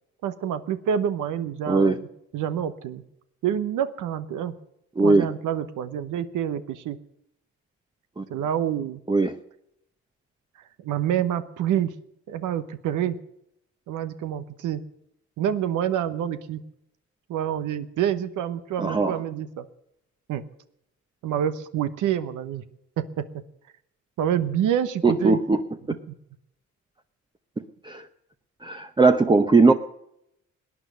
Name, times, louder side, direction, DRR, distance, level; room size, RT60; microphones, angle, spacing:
voice 1, 0.2-2.1 2.3-3.0 3.4-4.5 5.0-7.0 8.3-9.0 10.8-11.9 12.3-13.2 13.9-14.8 15.4-16.6 17.3-19.7 20.3-20.4 21.2-22.6 23.0-23.2 24.2-25.4 26.1-26.2, right 9 dB, 80° right, 11 dB, 1.0 m, -27 dB
voice 2, 18.8-19.1 25.0-25.6 27.8-28.0 28.6-29.7, right 3 dB, 15° right, 7 dB, 0.8 m, -19 dB
18.5 x 9.7 x 6.7 m, 0.79 s
cardioid pair, 90°, 30 cm